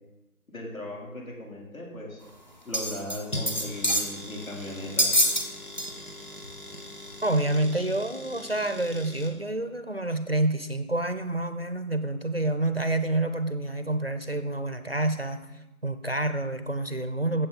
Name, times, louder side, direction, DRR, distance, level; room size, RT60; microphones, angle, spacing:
voice 1, 0.5-2.2 2.6-5.1, left 1 dB, 65° left, -2 dB, 3.8 m, -38 dB
sound 1, 2.7-3.2 3.5-4.1 5.0-5.4 5.8-5.9 6.4-6.5, equal, 30° left, 0.9 m, -24 dB
sound 2, 3.3-9.3, left 1 dB, 90° left, 2.6 m, -41 dB
voice 2, 7.2-15.5 15.8-17.5, right 2 dB, 45° right, 9 dB, 0.5 m, -28 dB
13.5 x 7.5 x 4.1 m, 1.0 s
figure-of-eight pair, 175°, 43 cm